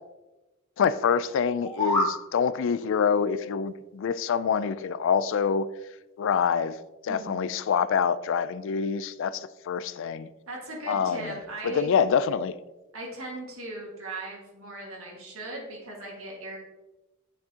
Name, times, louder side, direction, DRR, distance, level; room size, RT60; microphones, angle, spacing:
voice 1, 0.8-5.7 6.2-6.8 7.0-10.3 10.9-11.3 11.6-12.5, left 6 dB, 65° left, 16 dB, 0.4 m, -26 dB
sound 1, 1.5-2.2, left 2 dB, 10° left, 1.7 m, -26 dB
voice 2, 7.1-7.5 10.5-11.9 12.9-16.6, right 1 dB, 85° right, -2 dB, 1.7 m, -38 dB
8.9 x 6.1 x 2.8 m, 1.1 s
head